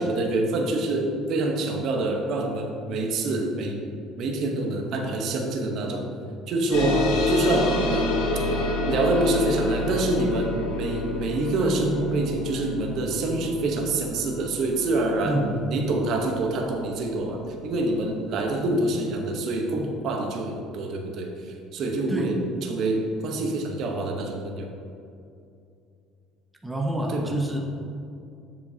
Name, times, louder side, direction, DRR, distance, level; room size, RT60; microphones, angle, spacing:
voice 1, 0.0-3.8 4.2-6.1 6.5-8.2 8.8-15.4 15.7-24.7 27.1-27.3, right 2 dB, 60° right, 2 dB, 1.0 m, -26 dB
sound 1, 6.7-17.6, left 2 dB, 85° left, 1.0 m, -29 dB
voice 2, 15.2-15.6 22.1-22.4 26.6-27.6, right 1 dB, 5° right, 0 dB, 0.8 m, -27 dB
7.4 x 7.1 x 2.8 m, 2.5 s
cardioid pair, 115°, 0 cm